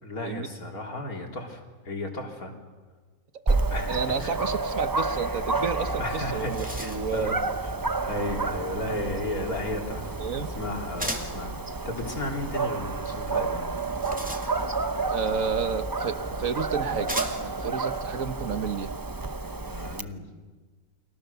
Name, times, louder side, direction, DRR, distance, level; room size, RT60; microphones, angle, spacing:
voice 1, 0.0-2.5 3.7-4.4 6.0-7.4 8.0-11.5 11.8-13.7 19.7-20.3, left 1 dB, 65° left, 2 dB, 4.0 m, -34 dB
Dog, 3.5-20.0, right 3 dB, 20° right, 0.6 m, -30 dB
voice 2, 3.9-7.3 10.2-10.5 15.1-18.9, right 6 dB, 60° right, 10 dB, 1.5 m, -31 dB
sound 1, 6.3-7.2 11.0-11.4 13.7-14.9 16.0-16.1 17.1-17.6, equal, 5° right, 2.6 m, -36 dB
29.5 x 24.5 x 7.0 m, 1.4 s
omnidirectional pair, 1.6 m